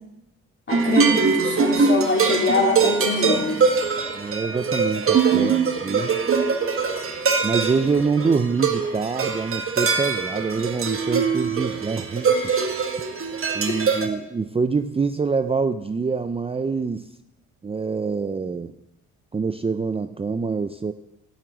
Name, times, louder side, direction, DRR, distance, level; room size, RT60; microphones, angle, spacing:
voice 1, 0.7-3.6 5.3-5.5 13.7-13.8, left 3 dB, 40° left, -1 dB, 3.7 m, -24 dB
sound 1, 0.7-14.1, right 5 dB, 45° right, 1.5 m, -22 dB
voice 2, 4.1-6.2 7.4-12.5 13.5-17.1 17.6-18.7 19.3-20.9, right 4 dB, 20° right, 10 dB, 0.5 m, -25 dB
12.5 x 7.3 x 8.0 m, 0.91 s
cardioid pair, 90°, 30 cm